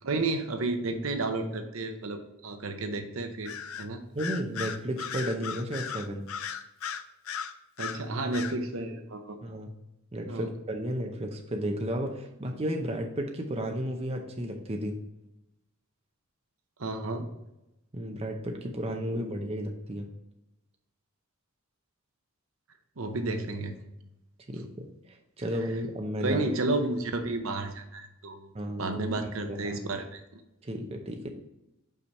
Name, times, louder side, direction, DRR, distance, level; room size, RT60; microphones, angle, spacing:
voice 1, 0.0-3.5 3.8-4.0 7.8-9.4 10.3-10.5 16.8-17.3 23.0-23.7 26.2-30.2, right 2 dB, 65° right, 6 dB, 0.8 m, -32 dB
Bird vocalization bird call bird song, 3.5-3.9 4.2-8.0 8.3-8.6, left 8 dB, 70° left, 0.5 m, -36 dB
voice 2, 4.1-6.2 9.4-9.7 10.1-15.0 17.9-20.1 24.5-26.4 28.5-29.0 29.4-29.8 30.6-31.3, equal, 25° right, 3 dB, 0.6 m, -33 dB
5.6 x 4.9 x 4.2 m, 0.91 s
head